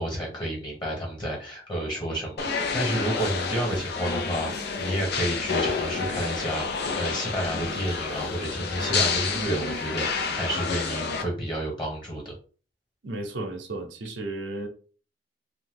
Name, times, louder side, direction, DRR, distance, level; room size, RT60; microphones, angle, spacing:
voice 1, 0.0-12.4, equal, 25° left, 1.3 m, -30 dB
sound 1, 2.4-11.2, left 5 dB, 60° left, 0.5 m, -29 dB
voice 2, 13.0-14.7, right 2 dB, 90° right, 0.7 m, -34 dB
2.8 x 2.4 x 3.7 m
head